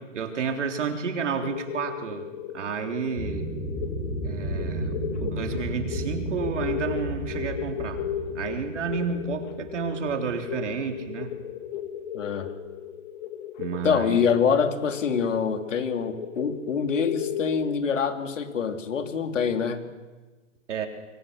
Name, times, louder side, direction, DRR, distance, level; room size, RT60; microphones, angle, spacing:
voice 1, 0.1-3.5 4.2-8.0 8.3-11.3 13.6-14.3 20.7-20.9, right 5 dB, 70° right, 4 dB, 3.7 m, -31 dB
sound 1, 1.4-17.6, left 10 dB, 35° left, 1.8 m, -36 dB
sound 2, 3.2-11.1, right 1 dB, 10° left, 7.0 m, -33 dB
voice 2, 12.1-12.5 13.8-19.9, left 6 dB, 75° left, 6 dB, 3.0 m, -25 dB
25.5 x 24.5 x 6.5 m, 1.3 s
hypercardioid pair, 160°, 38 cm